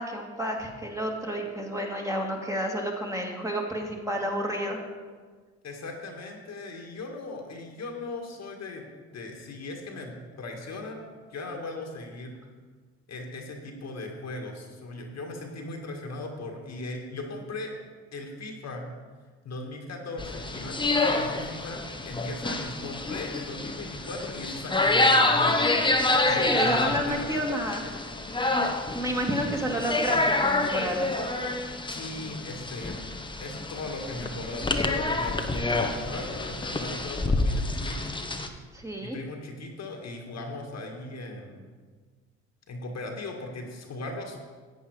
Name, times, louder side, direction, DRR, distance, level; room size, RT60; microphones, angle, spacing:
voice 1, 0.0-4.9 26.3-27.9 28.5-28.7 28.9-31.1 38.7-39.2, equal, 10° right, 0 dB, 2.2 m, -30 dB
voice 2, 5.6-11.0 11.3-12.3 13.1-17.7 18.1-18.8 19.4-27.4 31.9-33.0 33.4-38.1 39.0-41.7 42.7-44.4, left 2 dB, 50° left, 2 dB, 1.9 m, -38 dB
sound 1, 20.2-38.5, left 2 dB, 15° left, 1.1 m, -27 dB
11.0 x 8.2 x 4.9 m, 1.5 s
hypercardioid pair, 55°, 33 cm